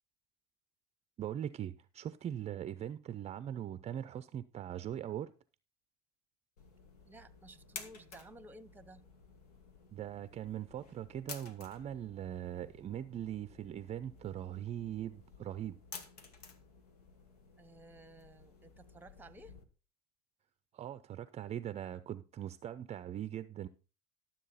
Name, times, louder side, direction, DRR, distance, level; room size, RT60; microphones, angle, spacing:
voice 1, 1.2-5.3 9.9-15.8 20.7-23.7, right 10 dB, 35° right, 0.5 m, -41 dB
sound 1, 6.6-19.6, left 4 dB, 85° left, 1.3 m, -54 dB
voice 2, 7.0-9.0 17.6-19.6, right 1 dB, 10° right, 0.9 m, -55 dB
12.0 x 7.5 x 4.0 m
hypercardioid pair, 75°, 19 cm